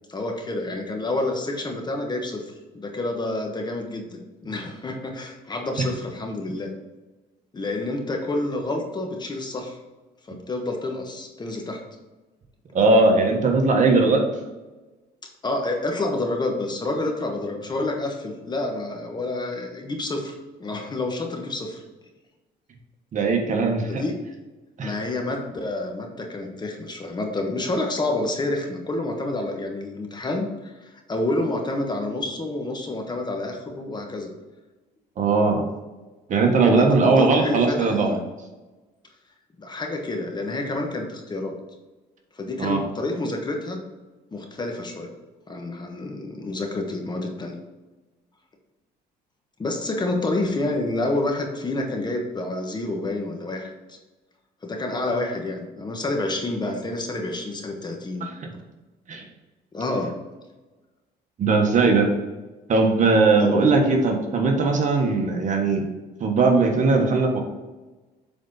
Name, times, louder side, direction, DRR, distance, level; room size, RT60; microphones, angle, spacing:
voice 1, 0.1-2.4 2.7-6.7 7.5-9.8 10.3-11.8 15.4-20.3 20.6-21.8 23.9-24.1 24.8-34.3 36.7-38.2 39.6-41.5 42.3-43.8 44.3-45.1 45.5-47.6 49.6-54.0 54.6-58.3 59.7-60.1 63.4-63.7, left 2 dB, 25° left, 2 dB, 1.3 m, -28 dB
voice 2, 12.7-14.2 23.1-24.0 24.8-24.9 35.2-35.6 36.3-38.2 42.6-42.8 58.4-58.5 59.1-59.2 61.4-62.1 62.7-65.8 66.2-67.4, right 3 dB, 50° right, 2 dB, 1.4 m, -19 dB
7.7 x 4.1 x 4.1 m, 1.2 s
cardioid pair, 110°, 17 cm